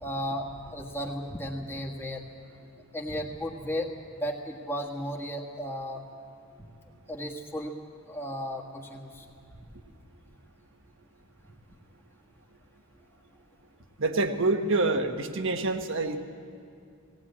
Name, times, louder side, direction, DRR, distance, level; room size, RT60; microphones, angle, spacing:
voice 1, 0.0-2.2 2.9-6.0 7.1-7.7 8.1-9.3, equal, 10° left, 0 dB, 1.7 m, -34 dB
voice 2, 14.0-16.2, right 2 dB, 60° right, 6 dB, 1.3 m, -26 dB
18.5 x 18.0 x 8.7 m, 2.5 s
head